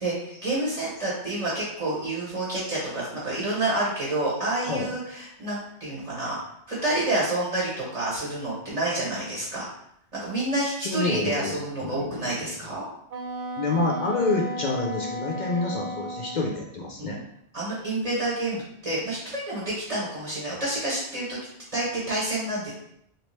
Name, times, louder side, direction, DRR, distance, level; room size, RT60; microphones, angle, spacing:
voice 1, 0.0-6.4 6.7-9.7 10.2-12.8 17.0-17.2 17.5-21.4 21.7-22.7, right 2 dB, 35° right, -7 dB, 1.0 m, -28 dB
voice 2, 10.8-12.3 13.6-17.2, left 3 dB, 55° left, 0 dB, 0.5 m, -28 dB
Wind instrument woodwind instrument, 13.1-16.5, right 1 dB, 50° right, 0.7 m, -34 dB
3.1 x 2.8 x 3.1 m, 0.73 s
omnidirectional pair, 1.2 m